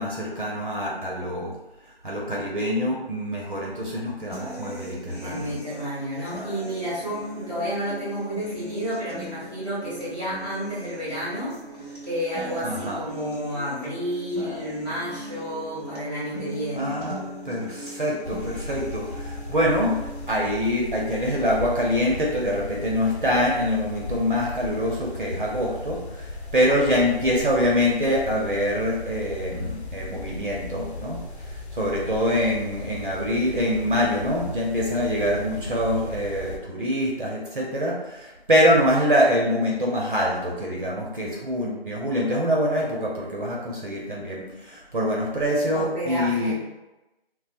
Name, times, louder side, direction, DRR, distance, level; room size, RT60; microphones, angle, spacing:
voice 1, 0.0-1.5 2.0-5.5 12.6-13.0 16.7-17.2 17.4-46.5, equal, 50° right, -3 dB, 0.6 m, -25 dB
sound 1, 4.3-20.3, right 1 dB, 40° left, 0.9 m, -39 dB
voice 2, 5.2-11.5 12.0-17.0 26.6-26.9 45.7-46.5, equal, 10° right, -10 dB, 0.9 m, -31 dB
sound 2, 18.2-36.6, left 2 dB, 90° left, 0.7 m, -37 dB
4.2 x 2.0 x 2.4 m, 1.0 s
figure-of-eight pair, 170°, 32 cm